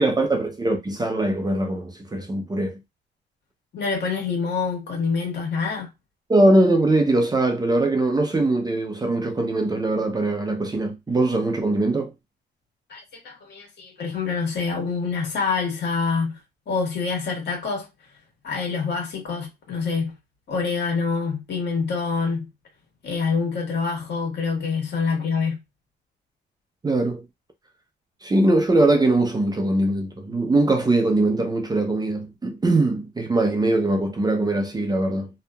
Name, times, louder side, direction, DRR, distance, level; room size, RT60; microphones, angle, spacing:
voice 1, 0.0-2.8 6.3-12.1 26.8-27.2 28.2-35.3, right 2 dB, 20° right, 0.6 m, -21 dB
voice 2, 3.7-5.9 12.9-16.4 16.7-17.9 18.4-20.1 20.5-22.5 23.0-25.6, left 5 dB, 60° left, 1.5 m, -26 dB
2.8 x 2.3 x 2.3 m
cardioid pair, 90°, 20 cm